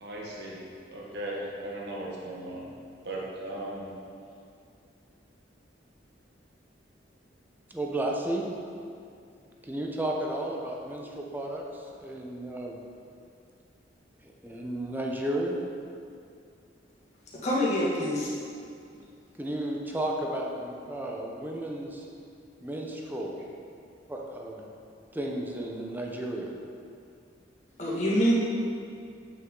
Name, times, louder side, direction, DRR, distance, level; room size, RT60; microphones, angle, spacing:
voice 1, 0.0-0.6 0.9-2.7 3.0-3.9 27.8-27.9, right 1 dB, 60° right, -4 dB, 1.4 m, -37 dB
voice 2, 7.7-8.5 9.6-12.8 14.2-15.6 19.4-22.1 22.6-23.3 24.1-24.6 25.1-26.5, right 1 dB, 10° right, -1 dB, 0.7 m, -33 dB
voice 3, 17.4-18.3 27.8-28.3, equal, 40° left, -7 dB, 1.8 m, -25 dB
8.4 x 6.1 x 3.8 m, 2.4 s
head